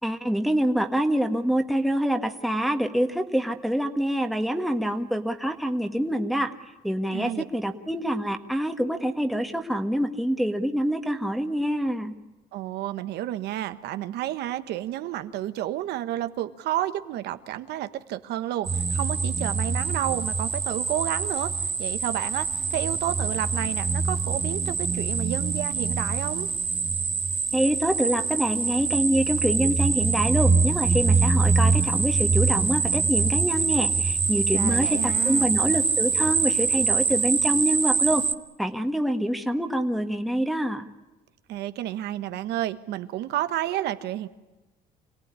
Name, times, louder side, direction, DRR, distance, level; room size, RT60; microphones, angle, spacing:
voice 1, 0.0-6.5 6.8-12.2 27.5-38.2 38.6-40.9, equal, ahead, 5 dB, 1.7 m, -26 dB
voice 2, 7.1-7.4 12.5-21.5 21.8-26.5 34.5-35.5 41.5-44.3, right 13 dB, 80° right, 11 dB, 1.4 m, -31 dB
glowing hieroglyphics, 18.6-38.3, right 5 dB, 30° right, 1.4 m, -24 dB
26.5 x 17.5 x 9.8 m, 1.1 s
cardioid pair, 110°, 17 cm